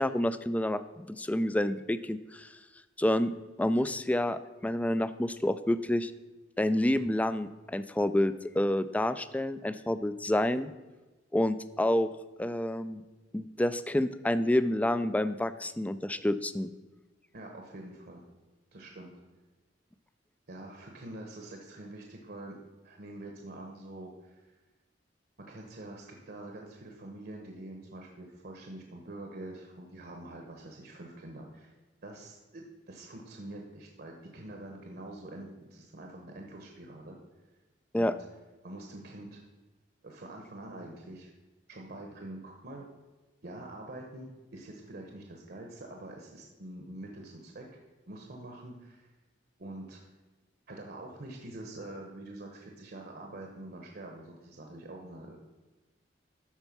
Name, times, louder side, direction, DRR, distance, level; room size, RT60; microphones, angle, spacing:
voice 1, 0.0-2.5 3.0-3.3 3.6-6.1 6.6-10.7 11.3-12.1 12.4-13.0 13.3-16.7 37.9-38.1, left 1 dB, 10° left, 13 dB, 0.3 m, -28 dB
voice 2, 17.3-18.2 18.7-19.1 20.5-22.6 22.8-24.5 25.4-31.7 32.0-37.2 38.0-38.1 38.6-39.4 40.0-41.3 41.7-42.9 43.4-47.7 48.1-49.1 49.6-50.0 50.7-55.4, right 1 dB, 60° right, 2 dB, 1.1 m, -45 dB
12.0 x 4.5 x 5.9 m, 1.2 s
head